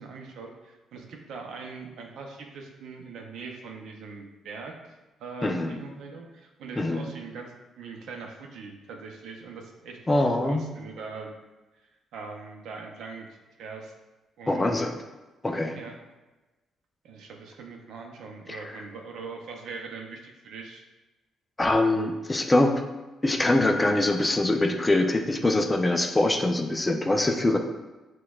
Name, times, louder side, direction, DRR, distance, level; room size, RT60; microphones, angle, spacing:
voice 1, 0.0-11.4 12.1-13.9 14.4-14.8 15.7-16.0 17.0-20.8, right 4 dB, 80° right, 2 dB, 0.5 m, -41 dB
voice 2, 5.4-5.8 6.8-7.1 10.1-10.6 14.5-15.0 15.4-15.8 18.5-18.6 21.6-22.8 23.2-27.6, left 2 dB, 20° left, 4 dB, 0.4 m, -23 dB
6.0 x 2.2 x 2.3 m, 1.1 s
cardioid pair, 90°, 0 cm